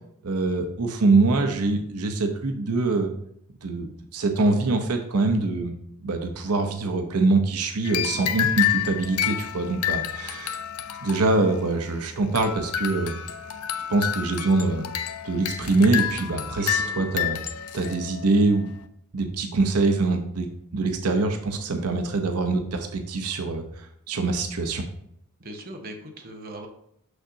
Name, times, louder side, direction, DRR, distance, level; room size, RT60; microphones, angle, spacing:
voice 1, 0.2-3.1 3.6-5.7 6.0-10.6 11.0-13.2 13.9-15.0 15.2-17.4 17.7-18.7 19.1-20.5 20.7-23.6 24.1-24.8, right 3 dB, 90° right, 4 dB, 0.8 m, -24 dB
sound 1, 7.8-18.9, left 10 dB, 80° left, 0.6 m, -29 dB
voice 2, 16.6-17.1 25.4-26.7, right 1 dB, 45° right, 2 dB, 1.0 m, -40 dB
6.5 x 6.2 x 2.7 m, 0.74 s
head